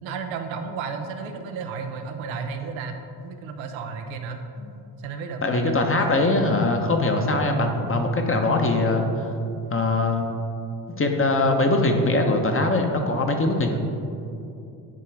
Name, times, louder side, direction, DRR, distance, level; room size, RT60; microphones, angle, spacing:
voice 1, 0.0-4.4 5.0-6.4 13.7-13.8, right 5 dB, 85° right, 5 dB, 0.8 m, -33 dB
voice 2, 5.4-9.3 9.7-10.3 10.9-13.8, left 2 dB, 30° left, 4 dB, 1.0 m, -22 dB
9.9 x 3.7 x 4.7 m, 2.7 s
supercardioid pair, 65°, 45 cm